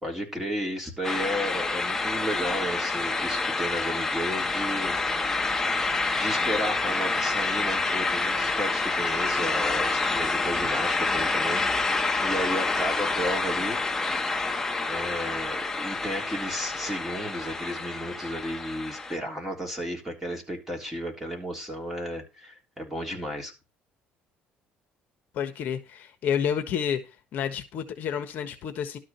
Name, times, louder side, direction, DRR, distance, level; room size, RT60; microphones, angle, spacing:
voice 1, 0.0-5.0 6.1-11.9 12.2-13.8 14.9-23.5, equal, 10° right, 3.5 m, -33 dB
sound 1, 1.0-19.2, left 3 dB, 10° left, 0.9 m, -28 dB
voice 2, 25.3-27.0 27.3-29.0, left 8 dB, 50° left, 1.4 m, -29 dB
12.5 x 5.0 x 7.5 m
cardioid pair, 160°, 4 cm